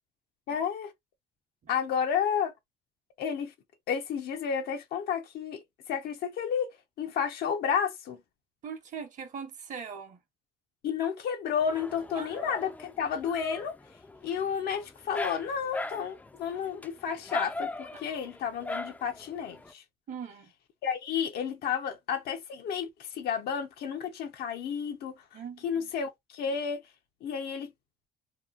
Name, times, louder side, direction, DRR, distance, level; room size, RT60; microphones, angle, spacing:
voice 1, 0.5-0.9 1.7-2.5 3.2-3.5 3.9-8.2 10.8-13.8 14.2-19.8 20.8-25.2 25.6-26.8 27.2-27.7, left 7 dB, 70° left, 0.6 m, -31 dB
voice 2, 8.6-10.2 12.1-12.3 20.1-20.5 25.3-25.9, right 6 dB, 50° right, 0.9 m, -41 dB
Dog, 11.6-19.7, left 2 dB, 10° left, 0.3 m, -40 dB
2.8 x 2.2 x 2.4 m
cardioid pair, 110°, 17 cm